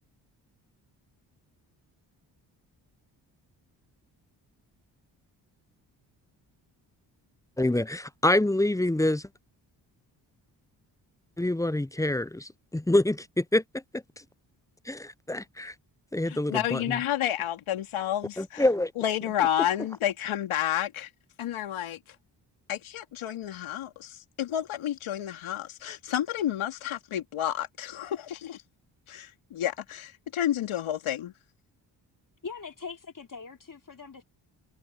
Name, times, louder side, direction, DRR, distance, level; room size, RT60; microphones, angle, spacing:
voice 1, 7.6-9.2 11.4-13.6 13.9-14.0 14.9-15.7 16.1-17.0 18.4-18.9, left 1 dB, 5° left, 0.8 m, -26 dB
voice 2, 16.3-18.7 19.0-21.1 21.4-22.0 22.7-28.6 29.1-31.3, left 11 dB, 75° left, 3.2 m, -30 dB
voice 3, 32.4-34.2, left 5 dB, 40° left, 3.4 m, -41 dB
hypercardioid pair, 45°, 49 cm